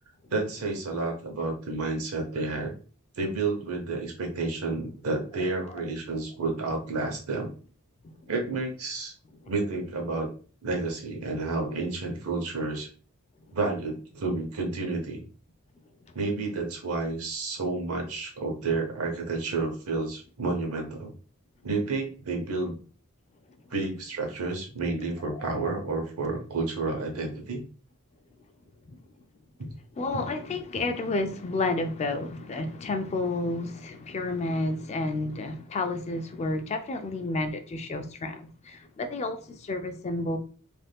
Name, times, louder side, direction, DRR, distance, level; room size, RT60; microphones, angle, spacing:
voice 1, 0.3-2.7 3.2-7.5 8.3-9.1 9.5-10.3 10.6-12.9 13.5-15.2 16.1-21.1 21.6-22.7 23.7-27.6 29.6-29.7, right 3 dB, 85° right, 0.9 m, -30 dB
voice 2, 25.3-25.7 28.9-29.0 30.0-40.4, left 2 dB, 30° left, 0.3 m, -31 dB
3.4 x 2.5 x 2.3 m
head